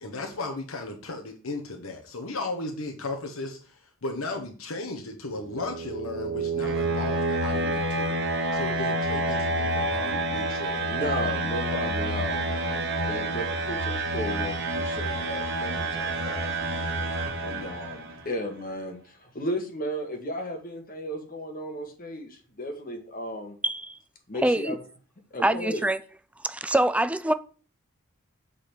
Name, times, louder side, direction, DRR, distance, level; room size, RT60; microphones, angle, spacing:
voice 1, 0.0-8.2 8.5-11.1, left 2 dB, 85° left, 1.2 m, -35 dB
sound 1, 5.4-18.2, right 2 dB, 55° right, 1.3 m, -28 dB
voice 2, 10.9-16.5 17.4-23.6 24.3-24.8 25.3-25.9, equal, 45° left, 1.7 m, -35 dB
voice 3, 23.6-24.0 24.4-24.8 25.4-26.0 26.4-27.3, right 1 dB, 5° right, 0.4 m, -24 dB
7.8 x 4.2 x 6.8 m
head